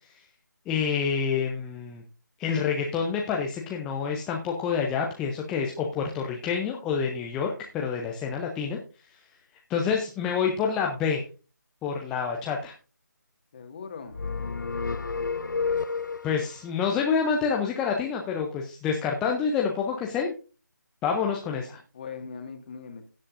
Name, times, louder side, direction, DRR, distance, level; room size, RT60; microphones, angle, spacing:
voice 1, 0.7-2.0 2.4-8.8 9.7-11.2 11.8-12.7 16.2-20.3 21.0-21.8, left 6 dB, 5° left, 0 dB, 0.5 m, -27 dB
voice 2, 13.5-14.3 21.9-23.1, left 5 dB, 30° left, 5 dB, 1.8 m, -40 dB
sound 1, 14.1-16.6, left 5 dB, 75° left, 0.5 m, -30 dB
16.0 x 7.5 x 2.5 m, 0.34 s
figure-of-eight pair, 160°, 10 cm